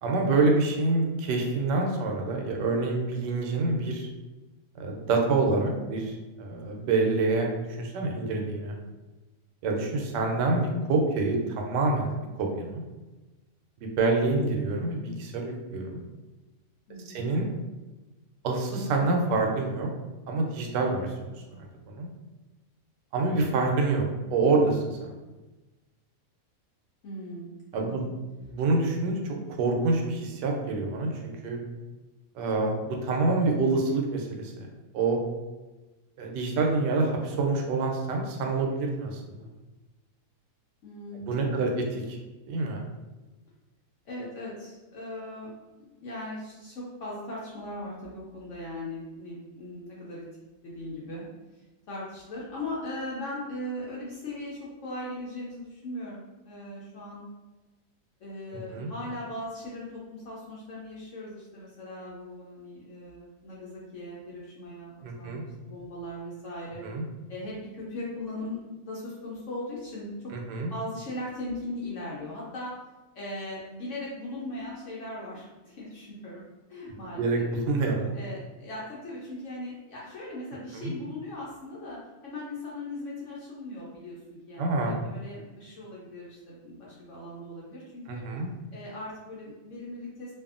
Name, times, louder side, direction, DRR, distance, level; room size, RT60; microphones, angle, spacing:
voice 1, 0.0-4.1 4.8-6.1 6.4-7.5 7.8-8.8 9.6-12.1 12.4-12.8 13.8-16.0 17.1-17.5 18.4-19.9 20.3-22.1 23.1-24.0 24.3-25.1 27.7-28.0 28.5-31.6 32.4-34.7 34.9-35.2 36.2-39.5 41.3-41.7 42.1-42.2 42.5-42.8 58.7-58.9 65.0-65.4 66.8-67.0 70.3-70.7 77.1-77.4 77.7-78.1 80.7-80.9 84.6-85.1 88.1-88.5, right 3 dB, 90° right, 1 dB, 1.2 m, -27 dB
voice 2, 16.9-17.3 27.0-28.1 40.8-41.6 44.0-45.5 46.0-50.2 50.6-51.2 51.5-51.6 51.9-57.2 58.2-66.8 67.3-70.3 70.7-72.8 73.1-76.4 76.7-77.5 78.1-88.2 88.7-90.3, left 1 dB, 65° left, -6 dB, 0.8 m, -39 dB
2.6 x 2.5 x 2.4 m, 1.1 s
omnidirectional pair, 1.8 m